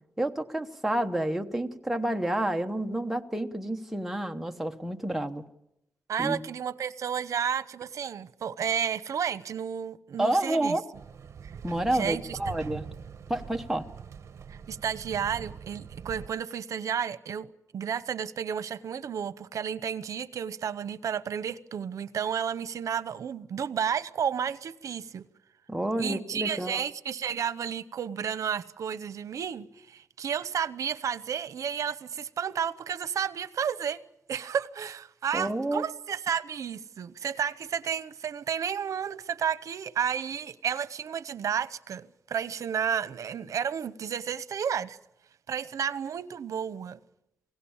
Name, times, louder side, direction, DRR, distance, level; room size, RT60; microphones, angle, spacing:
voice 1, 0.2-5.4 6.2-6.4 10.2-10.8 11.6-12.8 13.3-13.8 25.7-26.8 35.3-35.8, right 1 dB, 5° right, 1.1 m, -29 dB
voice 2, 6.1-10.8 11.4-11.5 11.9-12.4 14.5-25.2 26.0-34.0 34.3-45.0 45.5-47.0, right 8 dB, 85° right, 0.8 m, -32 dB
sound 1, 10.9-16.3, right 7 dB, 60° right, 1.1 m, -43 dB
28.5 x 18.0 x 7.2 m
wide cardioid pair, 180°, 5 cm